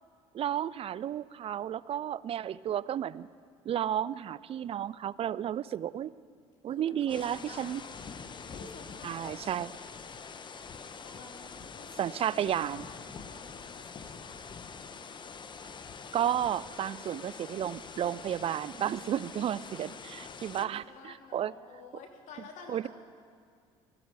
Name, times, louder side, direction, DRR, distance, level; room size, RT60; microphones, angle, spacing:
voice 1, 0.3-3.3 3.7-6.1 6.6-7.8 9.0-9.7 12.0-12.8 16.1-21.5 22.7-22.9, right 10 dB, 45° right, 19 dB, 0.4 m, -32 dB
voice 2, 6.7-9.5 11.0-14.8 16.6-17.7 19.7-19.8 20.3-22.9, left 4 dB, 65° left, 2 dB, 2.7 m, -52 dB
sound 1, 7.1-20.6, left 5 dB, 35° left, 1.0 m, -45 dB
20.5 x 14.0 x 4.8 m, 2.1 s
supercardioid pair, 75°, 14 cm